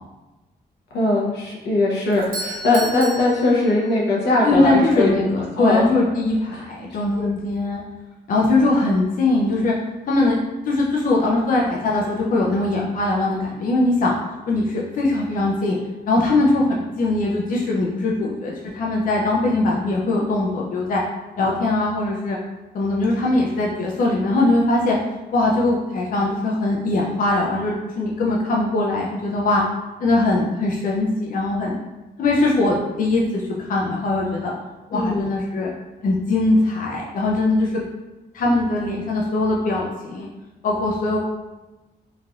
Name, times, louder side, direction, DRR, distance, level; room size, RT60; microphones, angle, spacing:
voice 1, 0.9-5.1 5.6-5.8 6.5-6.6 7.1-7.3 34.9-35.3, left 2 dB, 90° left, -4 dB, 0.8 m, -20 dB
Doorbell, 2.1-4.3, right 2 dB, 60° right, 0.5 m, -34 dB
voice 2, 4.4-7.8 8.3-9.7 10.1-10.4 10.6-14.1 14.5-15.7 16.1-21.0 21.4-22.4 22.7-25.0 25.3-29.6 30.0-31.8 32.2-34.5 34.9-35.7 36.0-37.8 38.3-40.3 40.6-41.2, left 2 dB, 55° left, -3 dB, 0.4 m, -21 dB
3.1 x 2.5 x 2.3 m, 1.1 s
cardioid pair, 105°, 17 cm